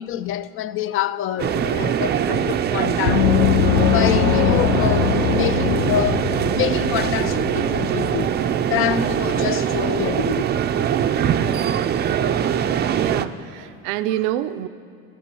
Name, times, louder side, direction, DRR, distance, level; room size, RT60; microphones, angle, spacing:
voice 1, 0.0-3.3 3.9-6.3 6.5-8.3 8.6-10.6, left 11 dB, 40° left, 0.5 m, -26 dB
sound 1, 1.4-13.3, right 9 dB, 30° right, 0.5 m, -22 dB
Gong, 3.1-8.3, left 11 dB, 85° left, 0.6 m, -22 dB
voice 2, 12.9-14.7, right 13 dB, 85° right, 0.6 m, -26 dB
13.5 x 11.0 x 6.9 m
supercardioid pair, 110°, 34 cm